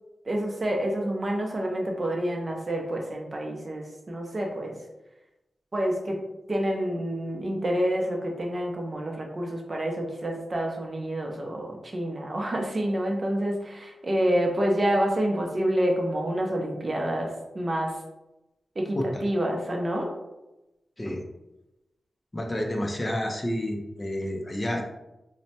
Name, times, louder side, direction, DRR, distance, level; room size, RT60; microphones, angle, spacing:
voice 1, 0.2-4.8 5.7-6.2 6.5-18.0 18.8-20.1, right 1 dB, 40° right, 1 dB, 0.5 m, -28 dB
voice 2, 22.3-24.8, left 1 dB, 25° left, 1 dB, 0.5 m, -29 dB
3.2 x 2.0 x 2.7 m, 0.95 s
wide cardioid pair, 75°, 0 cm